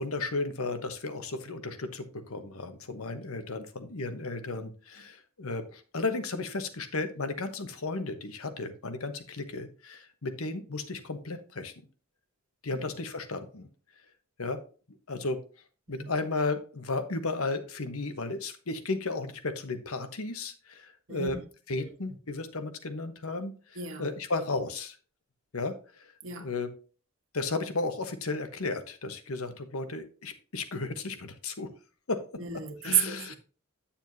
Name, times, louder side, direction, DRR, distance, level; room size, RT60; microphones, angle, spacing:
voice 1, 0.0-11.7 12.6-13.7 14.4-14.6 15.1-15.4 15.9-21.4 21.7-23.5 24.0-25.0 25.5-26.1 26.3-26.7 27.3-31.7 32.1-32.2 32.8-33.4, left 3 dB, 75° left, 1.1 m, -34 dB
voice 2, 23.8-24.1 26.2-26.5 32.4-33.2, right 9 dB, 65° right, 1.4 m, -31 dB
9.2 x 7.1 x 2.7 m
head